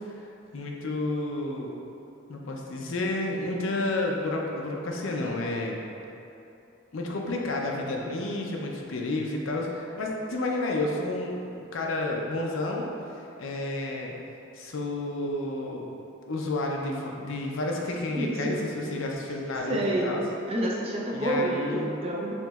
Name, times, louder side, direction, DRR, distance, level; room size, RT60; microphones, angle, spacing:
voice 1, 0.0-1.7 2.3-5.8 6.9-12.9 13.1-14.1 14.5-15.8 16.3-20.2 21.1-22.0, left 2 dB, 80° left, -1 dB, 0.5 m, -31 dB
voice 2, 18.2-18.6 19.7-20.2 20.5-22.3, right 1 dB, 30° right, -3 dB, 0.5 m, -28 dB
6.9 x 3.0 x 2.4 m, 2.8 s
head